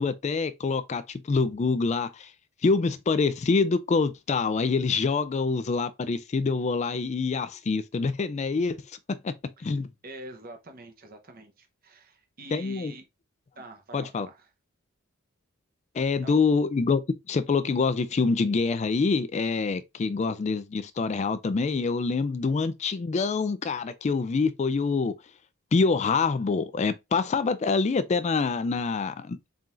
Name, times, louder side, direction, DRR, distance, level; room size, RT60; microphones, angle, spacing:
voice 1, 0.0-2.3 2.6-8.8 9.1-9.3 9.6-9.9 12.5-12.9 13.9-14.3 15.9-17.0 17.3-25.1 25.7-29.4, left 4 dB, 30° left, 0.3 m, -26 dB
voice 2, 10.0-13.0 13.6-14.5 16.0-16.4, right 2 dB, 45° right, 0.9 m, -46 dB
4.3 x 3.8 x 2.5 m
head